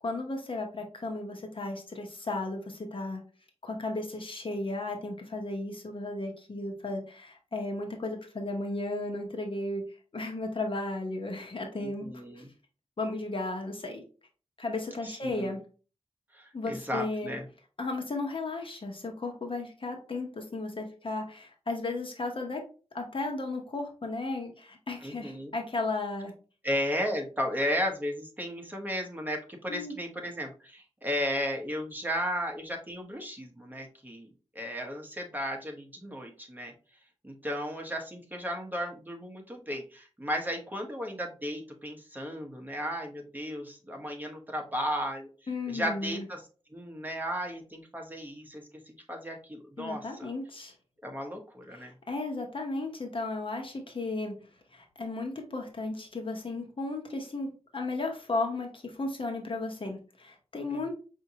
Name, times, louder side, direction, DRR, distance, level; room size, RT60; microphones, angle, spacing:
voice 1, 0.0-3.2 3.6-9.8 10.1-12.1 13.0-14.0 14.6-15.6 16.5-17.3 17.8-22.6 22.9-26.3 29.7-29.9 45.5-46.2 49.8-50.7 51.7-54.3 54.7-60.9, left 2 dB, 50° left, 2 dB, 1.0 m, -34 dB
voice 2, 11.8-12.5 15.0-15.5 16.3-17.4 25.0-25.5 26.6-36.7 37.2-45.3 45.7-46.4 46.7-50.3 51.0-51.9 60.7-60.9, equal, 15° right, 2 dB, 1.0 m, -35 dB
5.4 x 2.7 x 2.8 m, 0.36 s
wide cardioid pair, 80°, 11 cm